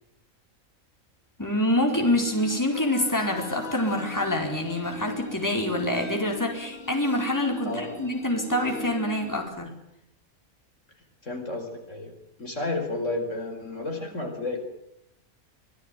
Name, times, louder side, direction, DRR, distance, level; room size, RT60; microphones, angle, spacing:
voice 1, 1.4-9.8, left 1 dB, 10° left, 2 dB, 4.7 m, -26 dB
sound 1, 2.2-9.5, left 2 dB, 40° left, 4.8 m, -38 dB
voice 2, 7.6-8.1 11.2-12.1 12.4-14.6, left 2 dB, 55° left, 4 dB, 5.0 m, -31 dB
25.5 x 18.5 x 9.2 m, 0.81 s
omnidirectional pair, 1.5 m